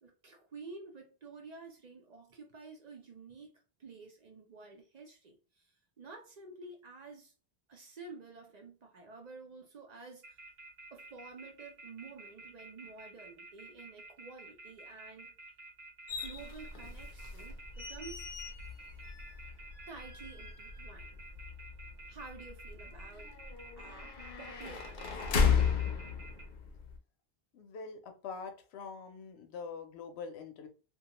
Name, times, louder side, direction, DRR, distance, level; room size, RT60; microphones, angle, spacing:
voice 1, 0.0-3.5 3.8-7.3 7.7-10.4 10.9-15.3 16.2-18.3 19.9-21.2 22.1-23.3 23.8-25.4, right 4 dB, 50° right, 0.5 m, -50 dB
sound 1, 10.2-26.4, right 2 dB, 75° right, 1.1 m, -51 dB
sound 2, 16.1-27.0, left 6 dB, 60° left, 0.6 m, -36 dB
voice 2, 27.5-30.7, left 5 dB, 90° left, 0.8 m, -44 dB
2.3 x 2.2 x 2.8 m
omnidirectional pair, 1.0 m